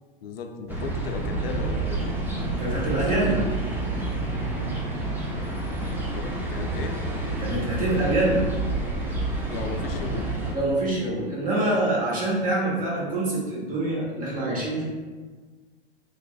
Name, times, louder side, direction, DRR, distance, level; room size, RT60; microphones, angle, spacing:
voice 1, 0.2-2.2 2.8-2.9 6.1-7.0 9.5-10.3, left 4 dB, 75° left, 4 dB, 0.5 m, -35 dB
sound 1, 0.7-10.5, right 2 dB, 5° right, 0.4 m, -29 dB
voice 2, 2.6-3.5 7.4-8.5 10.5-14.8, right 2 dB, 30° right, -5 dB, 1.2 m, -25 dB
3.3 x 3.2 x 2.2 m, 1.4 s
hypercardioid pair, 105°, 29 cm